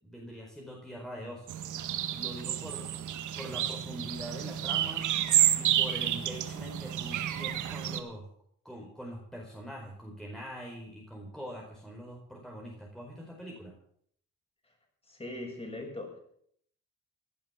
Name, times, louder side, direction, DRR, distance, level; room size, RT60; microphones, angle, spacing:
voice 1, 0.0-1.5 2.1-5.1 5.6-8.3 8.6-13.7, equal, ahead, -1 dB, 4.7 m, -43 dB
sound 1, 1.5-8.0, right 11 dB, 80° right, 1.7 m, -30 dB
voice 2, 15.1-16.2, left 2 dB, 20° left, 2 dB, 7.1 m, -40 dB
17.0 x 10.5 x 7.2 m, 0.64 s
cardioid pair, 90°, 30 cm